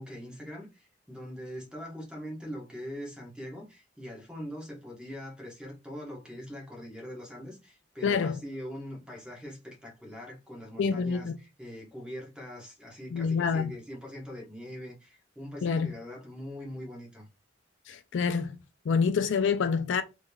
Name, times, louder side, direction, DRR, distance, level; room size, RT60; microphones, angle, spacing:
voice 1, 0.0-17.3, equal, 5° right, 1.1 m, -42 dB
voice 2, 8.0-8.4 10.8-11.4 13.1-13.8 15.6-15.9 17.9-18.6 18.9-20.0, left 5 dB, 70° left, 0.4 m, -27 dB
3.5 x 3.1 x 2.2 m
head